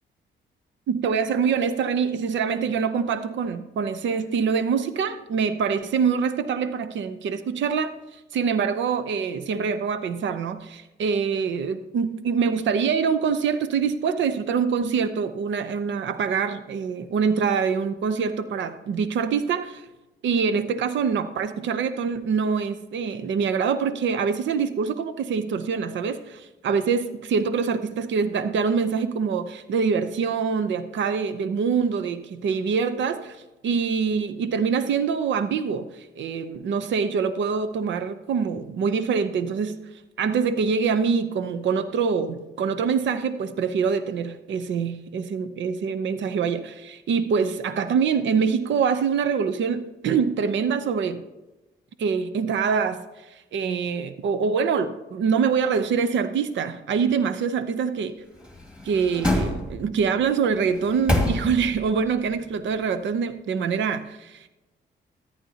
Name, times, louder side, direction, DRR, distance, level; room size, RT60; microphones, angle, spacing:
voice 1, 0.9-7.9 8.3-19.8 20.2-39.8 40.2-51.2 52.0-53.0 53.3-58.2 58.8-64.5, right 6 dB, 70° right, 12 dB, 0.7 m, -25 dB
sound 1, 58.3-60.1 60.6-61.9 62.3-62.4, left 1 dB, 5° right, 2.2 m, -27 dB
14.0 x 10.0 x 2.8 m, 1.0 s
cardioid pair, 75°, 20 cm